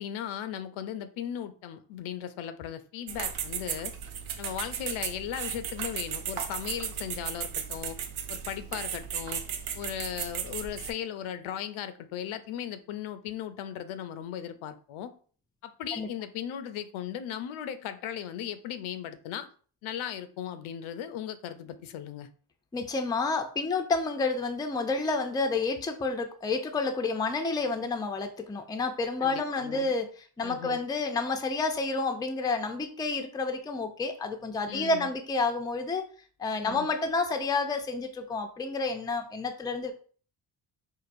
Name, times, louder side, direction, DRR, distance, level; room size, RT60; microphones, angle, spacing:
voice 1, 0.0-3.9 4.4-8.0 8.3-9.4 9.8-15.1 15.6-19.5 19.8-22.3 29.2-29.9 30.4-30.8 34.7-35.1 36.6-36.9, left 10 dB, 90° left, 0.6 m, -37 dB
sound 1, 3.1-10.9, right 8 dB, 85° right, 0.6 m, -35 dB
voice 2, 22.7-36.0 36.4-39.9, left 3 dB, 10° left, 0.3 m, -30 dB
4.6 x 2.5 x 2.5 m
cardioid pair, 110°, 47 cm